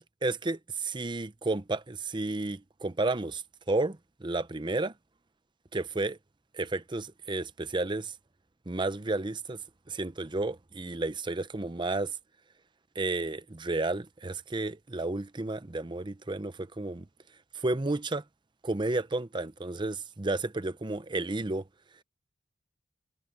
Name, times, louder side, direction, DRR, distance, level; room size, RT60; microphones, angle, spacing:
voice 1, 0.2-4.9 5.7-6.2 6.5-8.1 8.7-9.6 9.9-12.2 12.9-17.1 17.5-18.2 18.6-21.7, right 2 dB, 25° right, 0.7 m, -32 dB
head